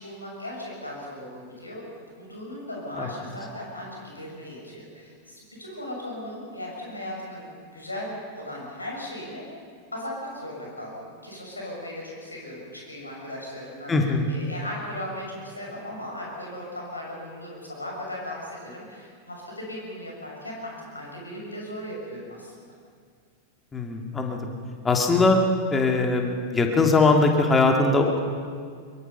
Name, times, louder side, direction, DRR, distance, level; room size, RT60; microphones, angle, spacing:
voice 1, 0.0-9.4 9.9-13.9 14.3-22.5, left 1 dB, 80° left, -2 dB, 6.6 m, -37 dB
voice 2, 13.9-14.3 23.7-24.5 24.8-25.4 25.7-28.2, left 3 dB, 15° left, 2 dB, 2.6 m, -21 dB
24.0 x 22.5 x 5.6 m, 2.1 s
figure-of-eight pair, 90°, 0 cm